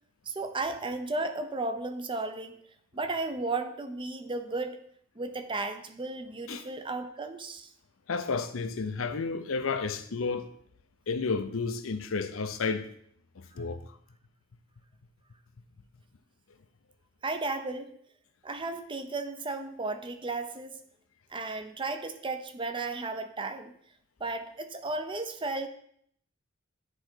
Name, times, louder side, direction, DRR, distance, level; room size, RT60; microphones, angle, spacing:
voice 1, 0.3-2.6 2.9-4.8 5.2-7.7 13.5-13.6 17.2-17.9 18.4-20.8 21.3-23.7 24.2-25.7, right 3 dB, 25° right, 0.6 m, -34 dB
voice 2, 8.1-10.5 11.1-12.9 13.4-13.8, left 4 dB, 75° left, 0.6 m, -31 dB
9.8 x 3.8 x 4.5 m
head